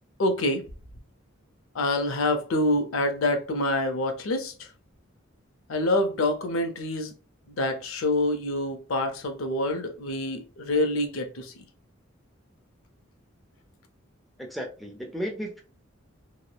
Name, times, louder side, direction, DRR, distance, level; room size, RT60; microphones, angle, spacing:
voice 1, 0.2-0.7 1.7-4.5 5.7-7.1 7.5-11.6, left 1 dB, 85° left, 0.5 m, -26 dB
voice 2, 14.4-15.6, equal, ahead, 0.4 m, -34 dB
3.0 x 2.0 x 2.2 m
head